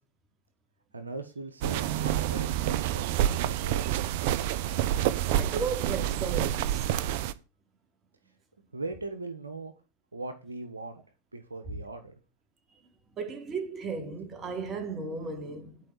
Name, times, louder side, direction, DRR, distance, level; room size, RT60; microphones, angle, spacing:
voice 1, 0.9-4.1 8.7-9.7 10.1-11.0 11.3-12.1, right 3 dB, 85° right, 1.2 m, -40 dB
sound 1, 1.6-7.3, right 11 dB, 55° right, 0.7 m, -28 dB
voice 2, 5.3-6.9 13.2-15.9, right 4 dB, 30° right, 2.9 m, -35 dB
11.0 x 5.0 x 7.8 m
figure-of-eight pair, 90°, 0 cm